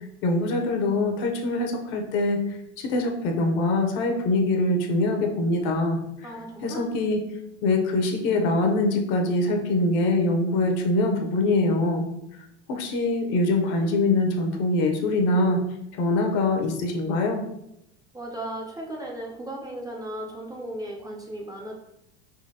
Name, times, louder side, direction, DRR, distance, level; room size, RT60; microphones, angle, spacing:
voice 1, 0.2-2.4 2.8-6.4 6.6-7.3 7.6-12.0 12.7-15.6 15.9-17.4, left 2 dB, 60° left, 3 dB, 0.8 m, -23 dB
voice 2, 6.2-6.9 18.1-21.7, right 1 dB, 10° right, -2 dB, 0.5 m, -36 dB
3.8 x 2.8 x 2.8 m, 0.81 s
hypercardioid pair, 105°, 34 cm